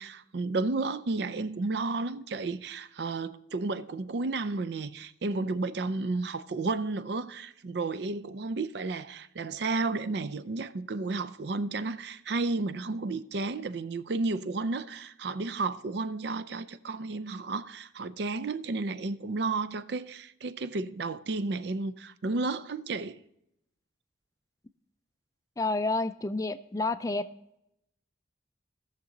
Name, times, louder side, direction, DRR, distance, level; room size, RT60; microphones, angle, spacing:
voice 1, 0.0-23.2, right 3 dB, 60° right, 0.5 m, -32 dB
voice 2, 25.6-27.3, left 2 dB, 20° left, 0.3 m, -29 dB
17.5 x 6.6 x 3.9 m
head